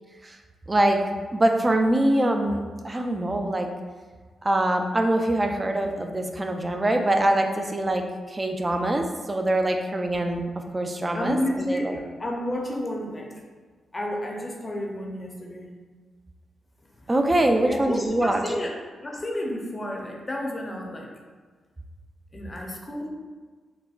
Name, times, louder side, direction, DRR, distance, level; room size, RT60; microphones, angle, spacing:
voice 1, 0.7-1.0 1.3-3.7 4.4-10.4 10.7-12.0 17.1-18.4, right 1 dB, 25° right, 4 dB, 0.4 m, -24 dB
voice 2, 11.1-13.4 13.9-15.7 17.0-17.1 17.7-18.7 19.0-21.1 22.3-23.1, left 1 dB, 30° left, 0 dB, 0.6 m, -31 dB
4.1 x 2.1 x 2.3 m, 1.4 s
supercardioid pair, 55°, 0 cm